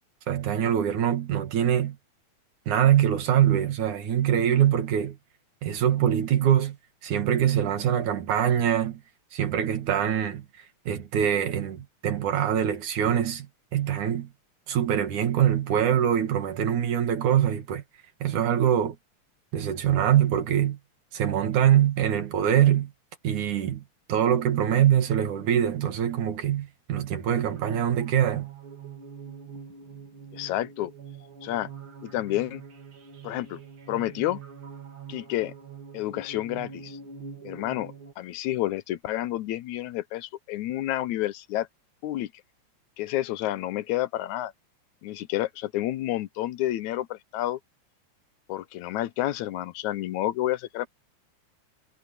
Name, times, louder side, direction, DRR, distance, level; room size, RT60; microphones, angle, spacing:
voice 1, 0.3-2.0 2.7-5.2 5.6-6.8 7.0-9.0 9.3-10.5 10.9-14.3 14.7-17.8 18.2-19.0 19.5-20.8 21.1-22.9 23.2-23.8 24.1-28.5, right 10 dB, 85° right, 3.5 m, -23 dB
sound 1, 27.3-38.1, right 5 dB, 45° right, 3.0 m, -44 dB
voice 2, 30.3-30.9 31.4-31.7 32.0-32.6 33.2-33.6 33.9-34.4 35.1-35.5 35.9-37.0 37.4-41.7 42.0-42.3 43.0-44.5 45.0-47.6 48.5-50.9, left 14 dB, 80° left, 2.2 m, -29 dB
omnidirectional pair, 3.4 m